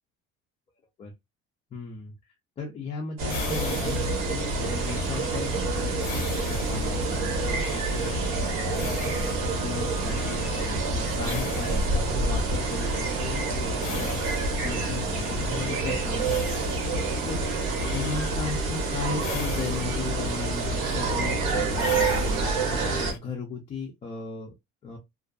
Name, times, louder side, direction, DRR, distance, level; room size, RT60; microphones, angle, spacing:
voice 1, 1.7-2.1 2.6-16.6 17.2-17.4 17.9-24.5 24.8-25.0, left 4 dB, 20° left, 0.4 m, -36 dB
sound 1, 3.2-23.1, right 3 dB, 90° right, 1.0 m, -27 dB
sound 2, 3.3-23.2, left 10 dB, 85° left, 0.5 m, -42 dB
2.6 x 2.4 x 2.3 m
cardioid pair, 180°, 30 cm